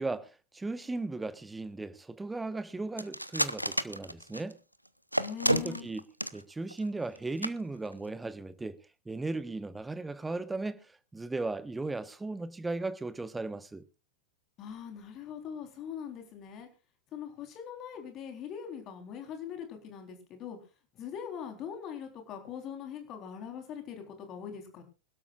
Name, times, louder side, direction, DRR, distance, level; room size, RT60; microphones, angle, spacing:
voice 1, 0.0-4.6 5.5-6.0 6.3-8.8 9.0-13.8, right 3 dB, 10° right, 1.1 m, -36 dB
sound 1, 3.0-4.5 5.1-6.4 6.7-6.8 7.2-7.3 7.4-7.5 7.9-8.1, equal, 90° right, 0.7 m, -30 dB
voice 2, 5.2-5.9 14.6-16.7 17.1-20.6 20.9-24.8, left 8 dB, 35° left, 3.8 m, -42 dB
25.5 x 12.5 x 2.4 m
figure-of-eight pair, 90°, 0 cm